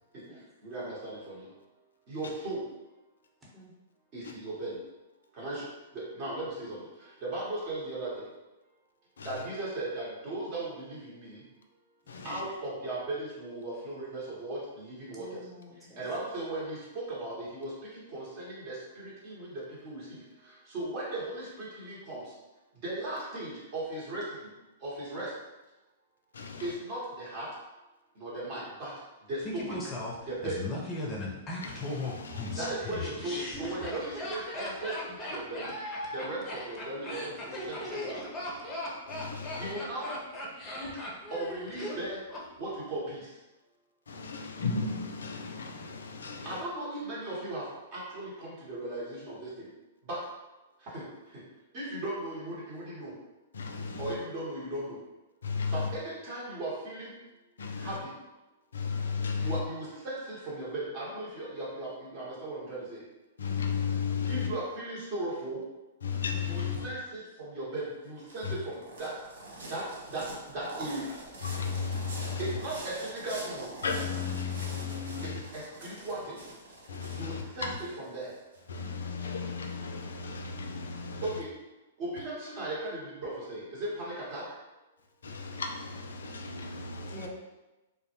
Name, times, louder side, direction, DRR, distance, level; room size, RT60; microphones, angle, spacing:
voice 1, 0.6-1.5 2.1-2.6 4.1-4.8 5.3-5.7 5.9-8.3 9.2-11.4 12.2-15.4 16.0-22.3 22.8-24.5 24.8-25.3 26.6-27.5 28.2-28.9 29.3-29.8 30.3-30.6 32.5-35.7 36.1-38.3 39.6-40.1 40.7-40.9 41.3-42.2 42.6-43.3 46.4-49.7 50.0-50.2 50.8-51.4 51.7-53.1 54.0-55.0 55.7-57.1 57.8-58.1 59.4-63.0 64.3-65.6 66.4-69.1 69.7-69.8 70.1-71.2 72.4-73.7 75.3-76.4 77.1-77.7 78.1-78.3 81.2-81.5 82.0-84.4, right 2 dB, 45° right, 0.9 m, -37 dB
voice 2, 12.1-12.4 26.3-26.7 31.6-32.7 39.1-39.7 44.1-46.6 53.5-54.2 55.4-55.9 57.6-58.0 58.7-59.6 63.4-64.5 66.0-66.9 68.4-68.5 71.4-72.6 73.8-75.4 76.9-77.8 78.7-81.4 85.2-87.3, left 5 dB, 75° left, 0.3 m, -35 dB
voice 3, 15.1-16.0 87.1-87.3, right 1 dB, 15° right, 0.8 m, -48 dB
Laughter, 29.4-42.4 42.7-42.8, left 1 dB, 25° left, 0.5 m, -37 dB
sound 1, 67.8-78.6, right 2 dB, 70° right, 0.6 m, -45 dB
2.1 x 2.0 x 2.9 m
hypercardioid pair, 110°, 0 cm